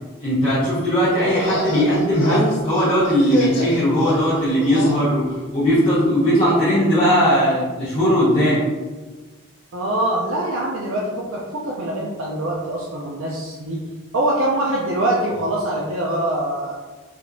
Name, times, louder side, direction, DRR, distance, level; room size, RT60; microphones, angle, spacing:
voice 1, 0.2-5.3 5.5-8.6, equal, 25° left, -12 dB, 1.0 m, -18 dB
sound 1, 1.2-5.0, left 1 dB, 70° left, 0.7 m, -28 dB
voice 2, 9.7-13.8 14.1-16.7, right 1 dB, 75° right, -4 dB, 0.5 m, -23 dB
5.0 x 2.8 x 2.6 m, 1.3 s
head